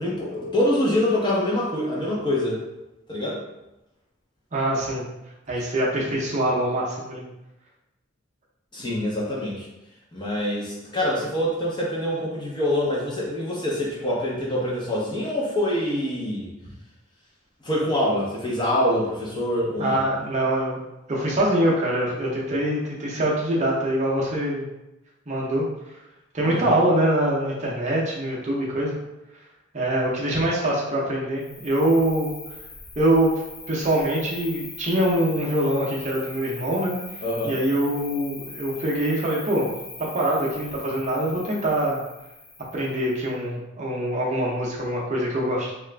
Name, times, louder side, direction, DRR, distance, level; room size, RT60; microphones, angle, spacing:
voice 1, 0.0-2.6 3.1-3.4 8.7-9.7 10.1-16.5 17.6-20.0 26.4-26.7 37.2-37.5, left 1 dB, 20° left, -5 dB, 0.7 m, -25 dB
voice 2, 4.5-5.0 5.5-7.2 19.8-20.8 21.1-24.7 25.3-25.7 26.3-29.0 29.7-32.3 33.0-33.4 33.7-37.0 37.4-39.7 40.0-42.0 42.7-45.7, right 1 dB, 35° right, -4 dB, 0.6 m, -24 dB
Cricket, 31.4-43.3, left 3 dB, 65° left, 0.9 m, -41 dB
2.9 x 2.4 x 3.3 m, 0.95 s
head